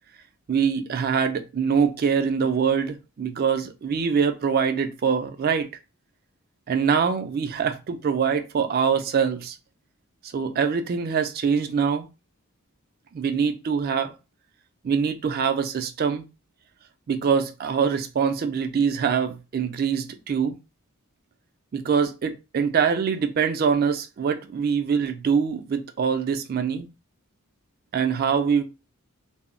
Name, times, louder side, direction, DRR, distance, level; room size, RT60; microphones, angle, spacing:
voice 1, 0.5-5.7 6.7-9.6 10.3-12.1 13.1-14.1 14.8-16.2 17.1-20.6 21.7-26.9 27.9-28.6, right 6 dB, 45° right, 0.3 m, -24 dB
2.2 x 2.0 x 3.6 m
head